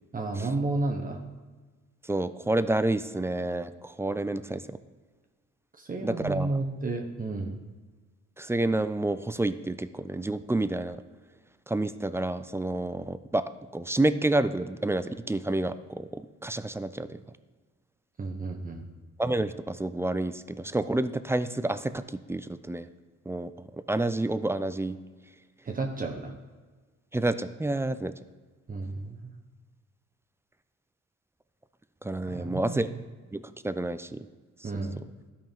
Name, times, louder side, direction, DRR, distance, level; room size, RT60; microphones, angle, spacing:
voice 1, 0.1-1.2 5.8-7.6 18.2-18.8 25.6-26.3 28.7-29.3 32.3-32.9 34.6-35.0, right 3 dB, 30° right, 1 dB, 0.9 m, -32 dB
voice 2, 2.0-4.8 6.0-6.5 8.4-11.0 11.7-17.2 19.2-22.9 23.3-25.0 27.1-28.1 32.0-32.9 33.3-34.3, right 2 dB, 10° right, 12 dB, 0.3 m, -29 dB
13.0 x 5.6 x 3.5 m, 1.3 s
cardioid pair, 90°, 30 cm